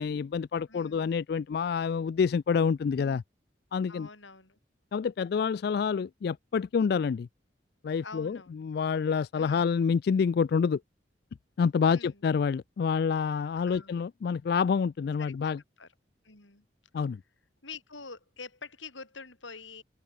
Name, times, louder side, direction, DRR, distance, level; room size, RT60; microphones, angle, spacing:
voice 1, 0.0-3.2 3.7-4.1 4.9-7.3 7.8-10.8 11.6-15.6 16.9-17.2, left 6 dB, 55° left, 0.3 m, -27 dB
voice 2, 0.7-1.1 3.9-4.6 8.0-8.7 9.4-9.7 11.9-12.2 13.6-14.1 15.2-15.5 15.8-15.9 16.2-16.6 17.6-19.8, left 4 dB, 90° left, 7.1 m, -46 dB
open air
head